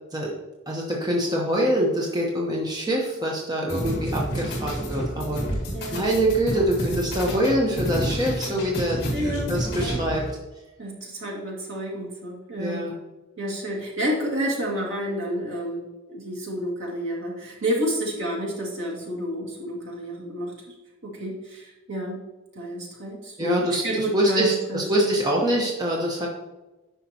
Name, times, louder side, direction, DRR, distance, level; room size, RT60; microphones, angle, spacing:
voice 1, 0.7-5.4 5.9-9.0 9.2-10.2 12.6-12.9 23.4-26.3, right 1 dB, 20° right, -2 dB, 0.9 m, -24 dB
sound 1, 3.7-10.3, equal, 50° left, 1.8 m, -29 dB
voice 2, 5.7-6.0 9.1-9.5 9.8-10.0 10.8-12.9 13.4-20.7 21.0-22.3 22.6-25.1, right 1 dB, 65° right, -2 dB, 2.0 m, -30 dB
9.4 x 5.7 x 2.9 m, 1.1 s
head